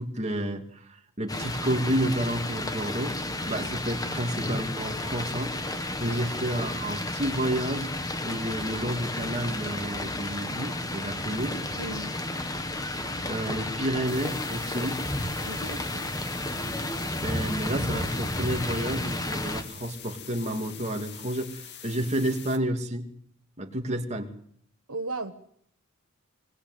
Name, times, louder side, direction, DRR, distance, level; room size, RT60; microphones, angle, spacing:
voice 1, 0.0-7.9 8.2-11.6 12.9-13.0 13.3-15.0 17.2-23.1 23.6-24.3, right 1 dB, 30° right, 3 dB, 2.8 m, -30 dB
sound 1, 1.3-19.6, left 1 dB, 15° left, 1.9 m, -32 dB
voice 2, 11.7-12.1 15.4-16.1 24.9-25.3, right 2 dB, 80° right, 9 dB, 1.5 m, -36 dB
sound 2, 14.1-22.6, left 9 dB, 50° left, 2.2 m, -44 dB
26.0 x 19.5 x 8.3 m, 0.68 s
head